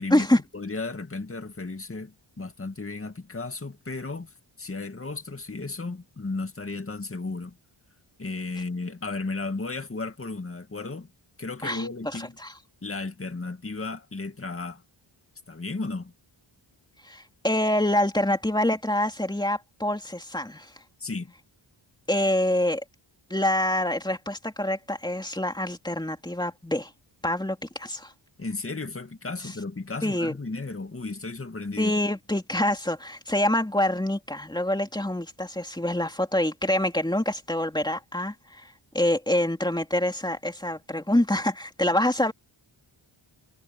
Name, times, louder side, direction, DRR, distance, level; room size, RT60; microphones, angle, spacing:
voice 1, 0.5-7.6 8.2-11.1 11.4-12.4 12.8-14.8 15.5-16.1 21.0-21.3 28.4-31.9, left 3 dB, 25° left, 2.2 m, -34 dB
voice 2, 12.2-12.5 17.0-20.7 22.1-22.8 23.3-26.9 27.2-28.1 30.0-30.3 31.8-42.3, left 1 dB, 10° left, 3.1 m, -26 dB
wide cardioid pair, 95°, 49 cm